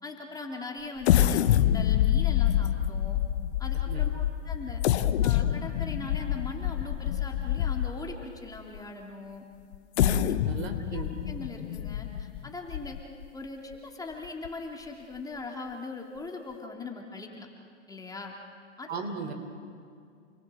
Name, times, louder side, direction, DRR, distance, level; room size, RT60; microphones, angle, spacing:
voice 1, 0.0-3.2 3.6-4.8 5.2-9.4 10.3-10.4 10.9-13.0 13.3-17.5 17.9-18.3 18.8-19.0, left 3 dB, 10° left, 0 dB, 2.9 m, -40 dB
sound 1, 1.0-8.2 8.7-8.8 9.7-13.3 13.7-13.8 14.2-14.5, left 11 dB, 60° left, 1.1 m, -26 dB
voice 2, 10.0-11.1 18.9-19.3, right 4 dB, 60° right, 7 dB, 3.8 m, -36 dB
29.5 x 21.5 x 7.8 m, 2.3 s
hypercardioid pair, 115°, 37 cm